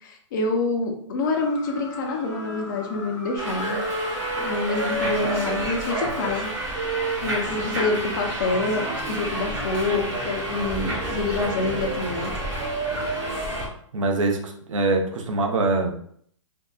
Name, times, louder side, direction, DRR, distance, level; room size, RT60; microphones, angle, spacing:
voice 1, 0.0-3.8 4.4-6.5 7.2-12.3, left 3 dB, 40° left, 2 dB, 0.5 m, -27 dB
sound 1, 1.2-6.6, left 3 dB, 65° left, 0.8 m, -41 dB
Wind instrument woodwind instrument, 1.6-9.7, right 2 dB, 45° right, 1.2 m, -33 dB
Subway metro underground, 3.4-13.7, right 1 dB, 15° right, 0.6 m, -30 dB
voice 2, 13.9-15.9, right 3 dB, 80° right, 3 dB, 0.6 m, -23 dB
2.6 x 2.1 x 2.3 m, 0.62 s
hypercardioid pair, 155°, 16 cm